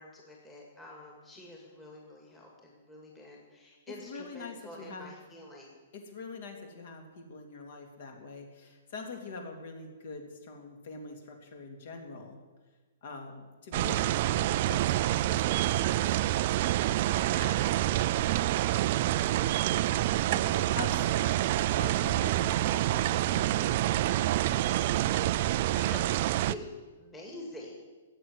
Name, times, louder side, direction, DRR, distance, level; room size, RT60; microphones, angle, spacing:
voice 1, 0.0-5.7 17.2-20.7 21.0-21.3 24.4-27.8, left 1 dB, 10° left, -3 dB, 2.1 m, -48 dB
voice 2, 4.1-5.1 5.9-12.4 13.0-16.0 20.3-21.0 21.7-23.9, left 4 dB, 45° left, 3 dB, 2.8 m, -44 dB
sound 1, 13.7-26.5, right 14 dB, 35° right, 0.4 m, -27 dB
15.5 x 8.0 x 9.7 m, 1.3 s
hypercardioid pair, 175°, 0 cm